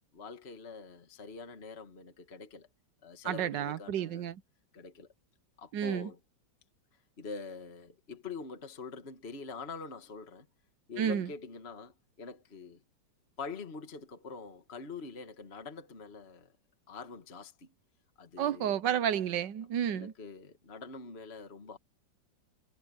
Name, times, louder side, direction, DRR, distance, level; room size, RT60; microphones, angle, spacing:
voice 1, 0.1-2.7 3.0-4.3 4.7-5.1 5.6-6.2 7.2-10.5 10.9-12.8 13.4-16.5 16.9-17.7 18.2-18.8 19.9-21.8, left 4 dB, 35° left, 1.9 m, -45 dB
voice 2, 3.2-4.4 5.7-6.1 11.0-11.3 18.4-20.1, right 9 dB, 70° right, 1.5 m, -31 dB
omnidirectional pair, 2.1 m